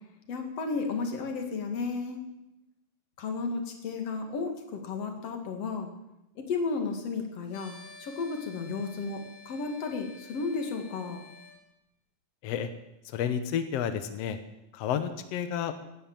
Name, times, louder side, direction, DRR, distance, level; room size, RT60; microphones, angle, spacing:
voice 1, 0.3-2.2 3.2-5.9 6.4-7.7 8.0-11.2, left 4 dB, 45° left, 4 dB, 2.7 m, -33 dB
sound 1, 7.5-11.6, left 4 dB, 65° left, 4.9 m, -51 dB
voice 2, 13.1-14.4 14.7-15.7, left 8 dB, 85° left, 9 dB, 1.4 m, -30 dB
17.5 x 11.0 x 7.4 m, 0.92 s
omnidirectional pair, 4.4 m